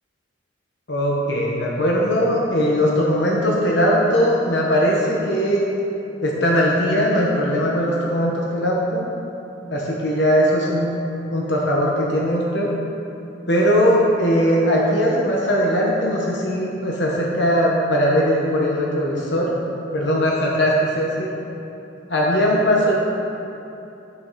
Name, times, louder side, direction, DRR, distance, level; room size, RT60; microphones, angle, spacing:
voice 1, 0.9-5.6 6.2-9.1 9.7-10.9 11.3-12.7 13.5-19.5 19.9-21.3 22.1-22.9, equal, 65° left, -3 dB, 1.1 m, -19 dB
10.5 x 6.0 x 4.1 m, 2.9 s
head